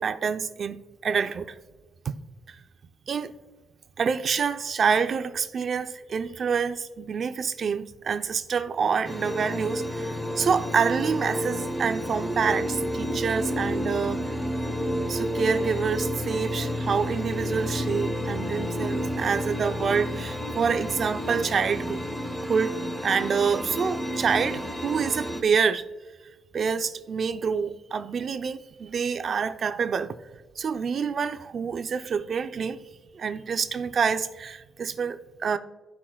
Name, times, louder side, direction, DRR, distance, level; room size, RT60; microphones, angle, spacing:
voice 1, 0.0-1.6 2.0-2.1 2.5-2.6 3.1-3.4 4.0-14.2 15.1-22.0 22.5-25.9 26.5-30.1 30.6-32.8 33.1-35.6, right 6 dB, 50° right, 0.6 m, -27 dB
sound 1, 9.0-25.4, equal, 15° left, 1.1 m, -30 dB
15.5 x 5.7 x 2.3 m
cardioid pair, 90°, 0 cm